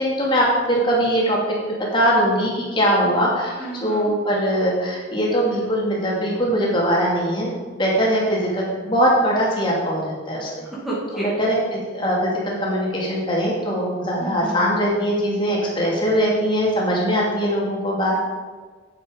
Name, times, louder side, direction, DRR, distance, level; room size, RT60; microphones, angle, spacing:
voice 1, 0.0-1.4 1.9-10.5 11.1-11.6 11.9-18.2, equal, 25° left, -4 dB, 2.3 m, -21 dB
voice 2, 3.6-4.1 10.4-11.3 14.2-14.7, right 2 dB, ahead, -7 dB, 1.9 m, -31 dB
8.5 x 8.3 x 5.0 m, 1.4 s
head